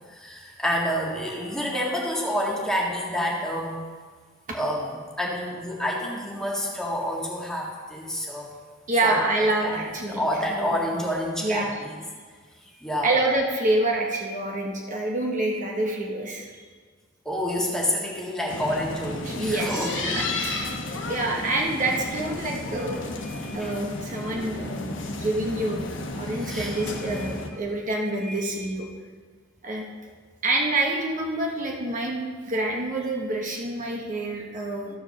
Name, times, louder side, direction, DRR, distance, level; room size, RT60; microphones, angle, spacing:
voice 1, 0.1-3.8 4.5-8.5 9.0-9.2 9.6-9.8 10.1-12.0 12.8-13.2 17.3-20.3 23.2-23.7 26.4-26.7 28.2-28.5, equal, 5° left, -4 dB, 1.8 m, -28 dB
voice 2, 8.9-10.8 11.4-11.7 13.0-16.7 19.2-20.7 21.0-23.1 23.5-24.9 25.2-25.9 26.1-28.9 29.6-29.8 30.4-34.9, right 2 dB, 40° right, -1 dB, 1.2 m, -27 dB
sound 1, 18.5-27.5, left 2 dB, 70° left, 1.1 m, -33 dB
13.5 x 4.9 x 6.5 m, 1.5 s
head